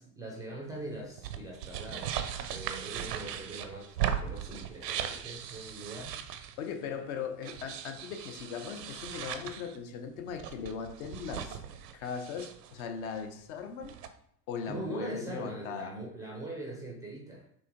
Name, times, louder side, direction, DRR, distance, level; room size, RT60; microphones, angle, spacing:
voice 1, 0.0-2.2 2.5-6.2 14.7-17.5, right 2 dB, 10° right, 0.3 m, -41 dB
sound 1, 1.0-6.7 7.4-9.8 10.2-12.8 13.2-13.3 13.6-14.1, right 9 dB, 70° right, 0.6 m, -38 dB
voice 2, 6.6-11.6 11.9-14.0 14.5-15.9, left 6 dB, 55° left, 0.7 m, -39 dB
6.1 x 2.9 x 2.6 m
figure-of-eight pair, 70°, 50 cm